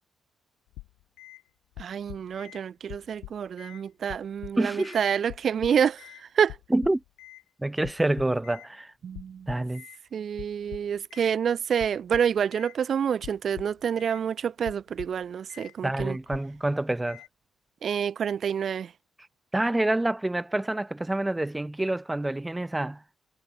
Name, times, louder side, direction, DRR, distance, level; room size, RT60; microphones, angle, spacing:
sound 1, 0.7-1.4 1.8-2.6 2.9-3.8 4.1-5.0 5.3-6.2 6.5-7.4 7.8-8.7 9.1-10.0 10.4-11.3 11.8-12.8 13.2-14.2 14.6-15.2 15.5-15.7 16.0-16.6 17.1-17.3, left 19 dB, 85° left, 3.6 m, -44 dB
voice 1, 1.8-6.6 9.0-9.5 10.1-16.2 17.8-18.9, right 8 dB, 60° right, 0.4 m, -28 dB
voice 2, 4.6-5.0 6.7-7.0 7.6-8.9 9.5-9.8 15.8-17.2 19.5-23.0, right 1 dB, 15° right, 0.6 m, -27 dB
hypercardioid pair, 45°, 0 cm